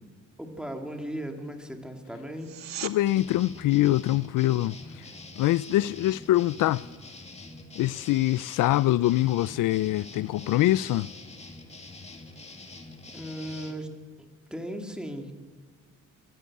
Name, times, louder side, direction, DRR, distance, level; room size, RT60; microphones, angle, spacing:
voice 1, 0.4-2.6 13.1-13.9 14.5-15.3, equal, 5° right, 2.3 m, -36 dB
sound 1, 2.3-3.0 14.3-14.4, right 10 dB, 55° right, 1.1 m, -37 dB
voice 2, 2.8-4.8 5.4-6.8 7.8-11.1, left 15 dB, 75° left, 0.5 m, -24 dB
sound 2, 3.1-13.7, left 2 dB, 20° left, 2.2 m, -45 dB
24.0 x 12.5 x 8.6 m
cardioid pair, 125°, 32 cm